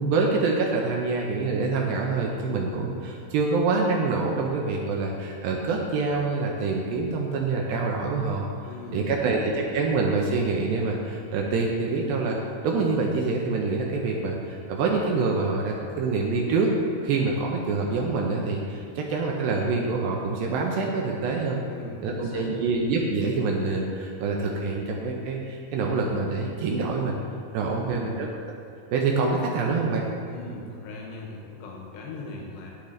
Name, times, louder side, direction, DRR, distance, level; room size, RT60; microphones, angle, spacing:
voice 1, 0.0-8.5 8.9-12.4 12.6-16.7 17.0-21.6 22.0-27.2 27.5-28.3 28.9-30.1, right 3 dB, 80° right, -1 dB, 2.2 m, -26 dB
voice 2, 8.6-9.6 21.7-22.6 27.6-28.1 30.3-32.7, left 2 dB, 85° left, 0 dB, 3.1 m, -39 dB
10.0 x 8.7 x 3.9 m, 2.5 s
omnidirectional pair, 5.0 m